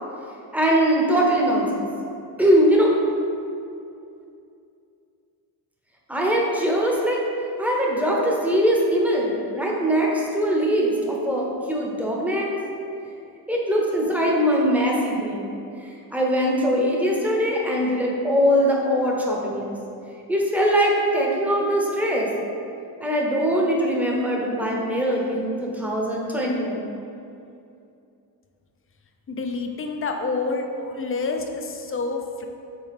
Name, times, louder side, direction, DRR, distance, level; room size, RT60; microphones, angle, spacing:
voice 1, 0.5-1.8 2.4-2.9 6.1-7.2 7.6-12.5 13.5-15.5 15.8-19.7 20.3-22.3 23.0-26.9, equal, 5° right, -3 dB, 0.9 m, -22 dB
voice 2, 29.3-32.5, left 3 dB, 30° left, 4 dB, 0.6 m, -28 dB
6.5 x 4.0 x 3.6 m, 2.6 s
cardioid pair, 105°, 41 cm